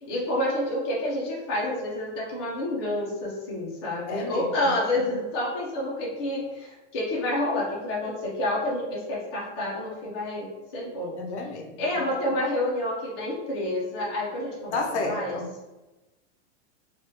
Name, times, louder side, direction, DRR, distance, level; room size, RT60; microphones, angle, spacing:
voice 1, 0.0-11.1 11.8-15.4, left 1 dB, 25° left, -6 dB, 0.5 m, -29 dB
voice 2, 4.1-4.5 4.9-5.1 11.2-12.2 14.7-15.5, left 3 dB, 70° left, 3 dB, 0.5 m, -31 dB
2.8 x 2.3 x 3.2 m, 1.1 s
supercardioid pair, 180°, 36 cm